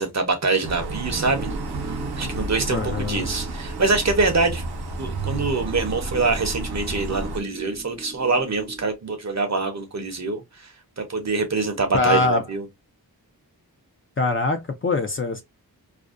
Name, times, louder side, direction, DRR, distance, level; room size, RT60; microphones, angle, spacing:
voice 1, 0.0-1.5 1.8-4.6 5.0-12.7, right 3 dB, 45° right, 0.7 m, -25 dB
sound 1, 0.6-7.4, right 2 dB, 85° right, 0.6 m, -31 dB
sound 2, 1.1-9.0, right 3 dB, 25° right, 0.4 m, -39 dB
voice 2, 2.7-3.3 11.9-12.4 14.2-15.4, left 3 dB, 35° left, 0.5 m, -23 dB
2.5 x 2.1 x 2.4 m
wide cardioid pair, 65°, 38 cm